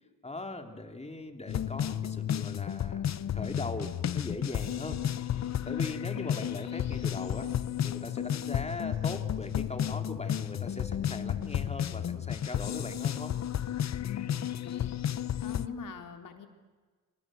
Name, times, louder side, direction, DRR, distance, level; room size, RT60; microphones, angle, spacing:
voice 1, 0.2-7.5 7.8-13.3, left 2 dB, 20° left, 5 dB, 3.5 m, -40 dB
sound 1, 1.5-15.7, left 10 dB, 50° left, 1.0 m, -32 dB
voice 2, 14.0-15.0 15.4-16.5, left 6 dB, 70° left, 5 dB, 3.8 m, -43 dB
27.5 x 27.0 x 8.0 m, 1.4 s
cardioid pair, 100°, 34 cm